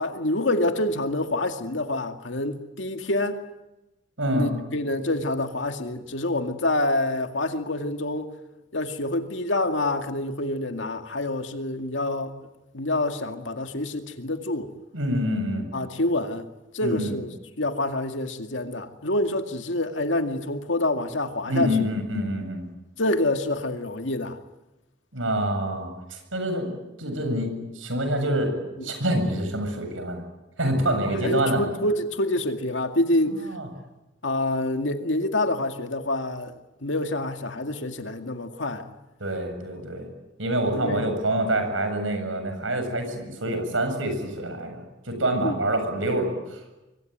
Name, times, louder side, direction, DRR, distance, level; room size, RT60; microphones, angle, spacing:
voice 1, 0.0-3.4 4.4-8.3 8.7-12.3 12.7-14.7 15.7-16.5 16.7-21.9 23.0-24.4 28.8-29.0 31.0-33.5 34.2-38.9 40.7-41.1 45.4-45.6, left 1 dB, 70° left, 2.2 m, -27 dB
voice 2, 4.2-4.6 14.9-15.7 16.8-17.2 21.5-22.7 25.1-26.7 27.0-28.5 28.8-30.2 30.6-31.7 33.3-33.7 39.2-40.1 40.4-46.6, right 1 dB, 90° right, 7.6 m, -26 dB
25.5 x 24.5 x 9.4 m
head